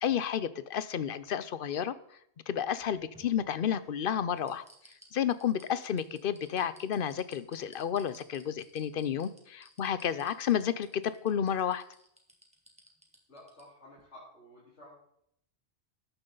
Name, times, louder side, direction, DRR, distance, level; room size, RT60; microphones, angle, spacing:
voice 1, 0.0-2.0 2.5-4.6 5.1-11.8, left 9 dB, 55° left, 15 dB, 0.8 m, -31 dB
sound 1, 2.6-3.9 4.4-13.6 14.0-14.1, equal, 5° right, 2.2 m, -57 dB
voice 2, 13.3-14.9, left 1 dB, 90° left, -9 dB, 4.2 m, -53 dB
13.0 x 9.9 x 3.9 m, 0.73 s
omnidirectional pair, 1.1 m